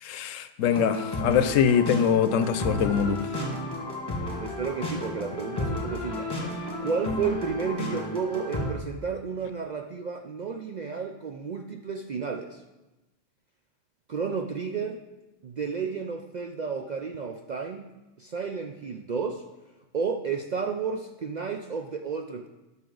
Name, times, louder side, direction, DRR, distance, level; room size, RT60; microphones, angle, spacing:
voice 1, 0.0-3.2, left 7 dB, 85° left, 12 dB, 1.0 m, -23 dB
sound 1, 0.7-8.7, left 1 dB, 20° left, 1.7 m, -32 dB
voice 2, 4.2-6.3 6.8-12.6 14.1-15.0 15.4-19.4 19.9-22.5, right 5 dB, 60° right, 4 dB, 0.4 m, -32 dB
12.5 x 5.8 x 3.9 m, 1.1 s
omnidirectional pair, 1.3 m